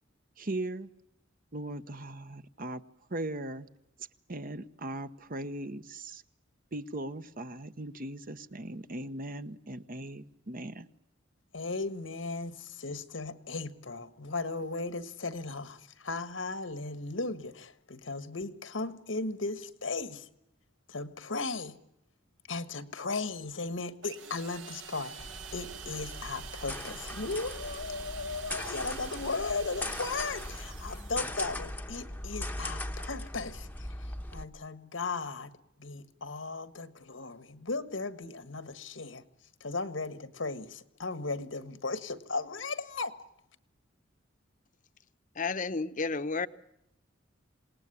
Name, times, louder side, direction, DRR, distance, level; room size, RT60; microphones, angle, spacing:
voice 1, 0.4-0.9 1.5-2.8 3.1-3.7 4.0-6.2 6.7-10.9, right 1 dB, 45° right, 1.1 m, -39 dB
voice 2, 11.5-20.3 20.9-21.8 22.5-35.5 35.8-39.2 39.6-43.1, left 3 dB, 85° left, 1.6 m, -36 dB
sound 1, 24.0-31.6, right 7 dB, 75° right, 2.3 m, -46 dB
sound 2, 25.2-34.4, left 1 dB, 10° left, 1.0 m, -39 dB
voice 3, 45.4-46.5, left 4 dB, 45° left, 0.9 m, -31 dB
27.5 x 19.5 x 10.0 m
head